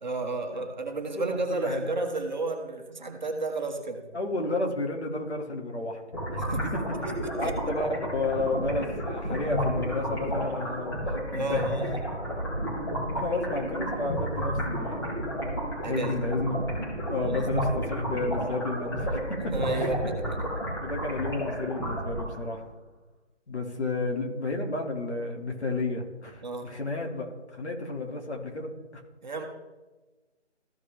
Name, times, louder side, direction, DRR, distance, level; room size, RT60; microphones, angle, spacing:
voice 1, 0.0-4.1 6.4-7.6 11.3-12.0 15.8-16.2 17.2-17.6 19.5-20.4 26.4-26.7 29.2-29.4, right 2 dB, 40° right, 3 dB, 1.2 m, -32 dB
voice 2, 1.2-1.8 4.1-6.0 7.4-11.7 13.1-15.3 15.9-16.5 17.1-19.4 19.8-19.9 20.8-22.6 23.5-29.0, left 2 dB, 70° left, 1 dB, 2.4 m, -31 dB
sound 1, 6.1-22.5, equal, 20° left, 2.4 m, -32 dB
14.5 x 5.0 x 3.4 m, 1.2 s
figure-of-eight pair, 170°, 35 cm